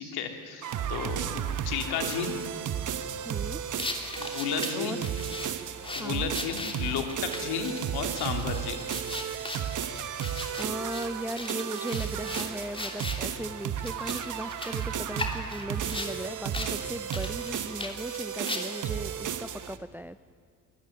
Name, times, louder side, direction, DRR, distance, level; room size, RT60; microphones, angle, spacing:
voice 1, 0.0-2.4 4.2-5.0 5.9-8.8, left 7 dB, 70° left, 5 dB, 3.1 m, -33 dB
sound 1, 0.6-19.8, right 9 dB, 50° right, 1.3 m, -34 dB
voice 2, 3.2-3.6 4.7-5.0 6.0-6.3 10.6-20.3, right 1 dB, 5° right, 15 dB, 0.6 m, -37 dB
sound 2, 3.8-13.3 13.8-16.1 16.5-16.7 17.0-18.9, left 2 dB, 15° left, 3.1 m, -38 dB
23.5 x 13.5 x 9.7 m, 2.2 s
supercardioid pair, 75°, 40 cm